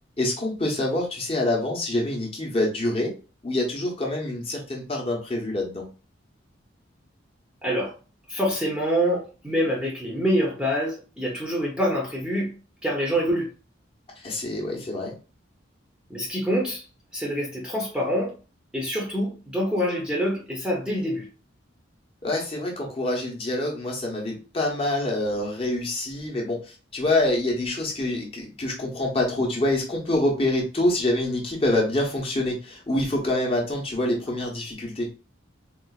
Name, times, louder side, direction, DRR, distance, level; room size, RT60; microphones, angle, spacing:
voice 1, 0.2-3.1 3.4-5.8 14.2-15.2 22.2-35.1, left 1 dB, 30° left, 0.8 m, -26 dB
voice 2, 7.6-7.9 8.3-12.5 12.8-13.5 16.1-16.8 17.1-18.3 18.7-21.3, equal, 5° right, 0.7 m, -26 dB
3.8 x 2.4 x 2.3 m
head